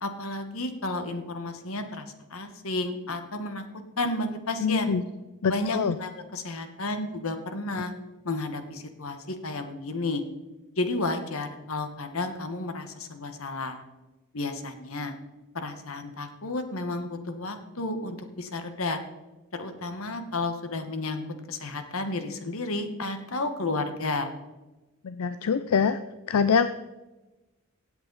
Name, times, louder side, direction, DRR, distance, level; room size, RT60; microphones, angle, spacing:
voice 1, 0.0-3.6 4.0-4.9 5.5-7.9 8.2-10.2 10.8-13.8 14.3-15.1 15.5-19.0 19.5-24.3, left 2 dB, 70° left, 8 dB, 1.3 m, -32 dB
voice 2, 4.6-5.0 5.4-6.0 25.0-26.0 26.3-26.7, left 6 dB, 85° left, 12 dB, 0.5 m, -24 dB
16.5 x 7.9 x 4.0 m, 1.1 s
head